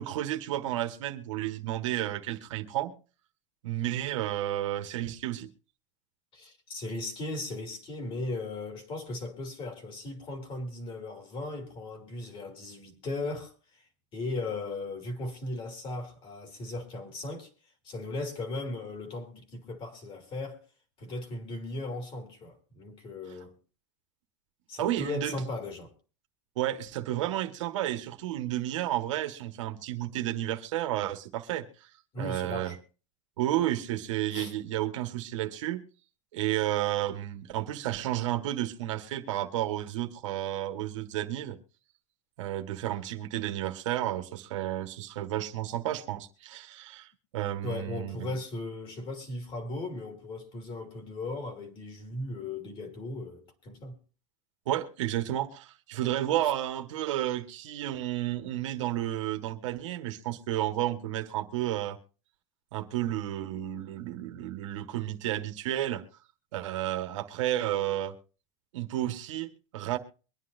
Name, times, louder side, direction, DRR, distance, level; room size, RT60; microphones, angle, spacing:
voice 1, 0.0-2.9 3.6-5.5 24.8-25.4 26.6-31.9 32.2-32.7 33.4-35.8 36.3-41.6 42.4-47.1 47.3-48.3 54.6-62.0 62.7-66.0 66.5-68.1 68.7-70.0, right 13 dB, 80° right, 1.5 m, -32 dB
voice 2, 6.3-13.5 14.1-17.5 17.8-20.6 21.0-23.5 24.7-25.9 32.1-32.8 34.3-34.5 47.6-54.0 56.4-56.5, left 2 dB, 35° left, 2.7 m, -37 dB
23.5 x 9.8 x 2.7 m
supercardioid pair, 135°, 16 cm